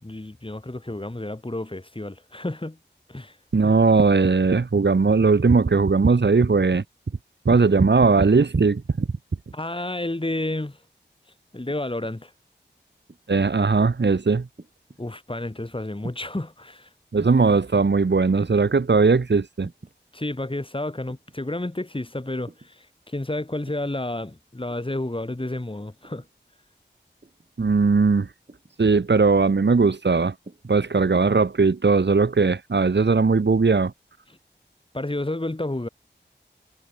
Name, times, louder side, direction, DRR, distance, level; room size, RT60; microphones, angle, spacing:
voice 1, 0.0-2.8 3.1-3.4 9.5-10.8 11.5-12.3 15.0-16.9 20.1-26.2 34.9-35.9, left 1 dB, 30° left, 4.5 m, -30 dB
voice 2, 3.5-6.8 7.5-9.1 13.3-14.5 17.1-19.7 27.6-28.3 28.8-30.3 30.7-33.9, right 4 dB, 65° right, 1.9 m, -19 dB
sound 1, 13.1-13.5 14.6-15.0 16.0-16.5 17.2-17.7 18.4-18.7 19.6-20.0 21.1-21.4 22.5-22.7 23.6-24.0 24.7-25.0 26.0-26.3 27.2-27.5 28.5-28.8 29.3-29.6 30.4-30.8 31.1-31.2, right 2 dB, 45° right, 7.5 m, -43 dB
wide cardioid pair, 50°, 19 cm